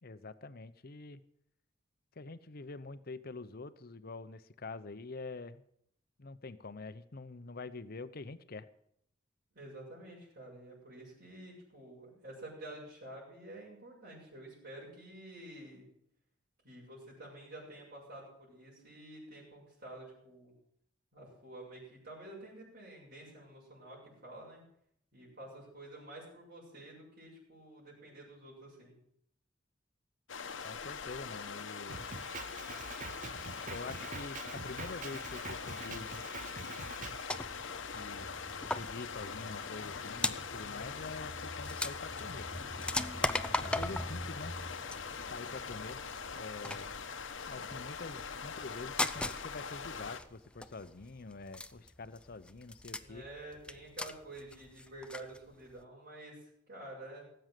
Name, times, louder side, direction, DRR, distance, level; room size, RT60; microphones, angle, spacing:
voice 1, 0.0-1.2 2.2-5.6 6.2-8.7 30.6-32.1 33.7-36.1 37.9-38.3 38.6-42.7 43.6-44.5 45.2-46.0 46.3-46.9 47.5-53.2, left 3 dB, 50° left, 13 dB, 0.8 m, -46 dB
voice 2, 9.5-15.9 16.6-20.5 21.1-24.6 25.1-28.9 53.0-57.2, right 1 dB, 55° right, -5 dB, 6.8 m, -50 dB
sound 1, 30.3-50.2, left 5 dB, 80° left, 1.0 m, -42 dB
Drum kit, 31.9-37.2, right 4 dB, 40° right, 0.7 m, -46 dB
sound 2, 37.3-55.4 55.7-55.8, left 1 dB, 5° left, 0.5 m, -40 dB
18.0 x 7.9 x 7.6 m, 0.71 s
head